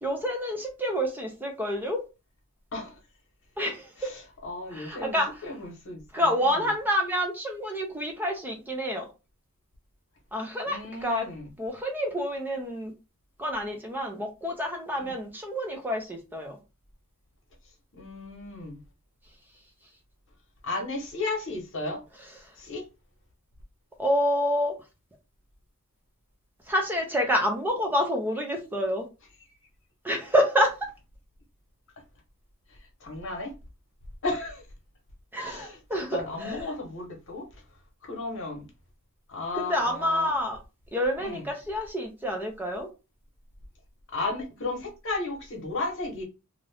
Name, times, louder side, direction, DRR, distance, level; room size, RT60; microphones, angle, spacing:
voice 1, 0.0-2.0 3.6-4.1 4.7-5.5 6.1-9.1 10.3-11.3 11.6-12.9 13.4-16.6 24.0-24.7 26.7-29.1 30.0-30.7 35.3-36.7 39.5-40.6 40.9-42.9, equal, 10° right, 0.5 m, -28 dB
voice 2, 4.0-6.7 10.7-11.5 15.0-15.1 17.9-18.8 20.6-22.0 22.6-22.8 33.0-33.5 34.2-34.6 35.4-35.8 36.1-37.6 38.0-38.7 39.3-40.3 41.2-41.4 44.1-46.2, left 2 dB, 60° left, 1.0 m, -34 dB
2.6 x 2.4 x 3.3 m
head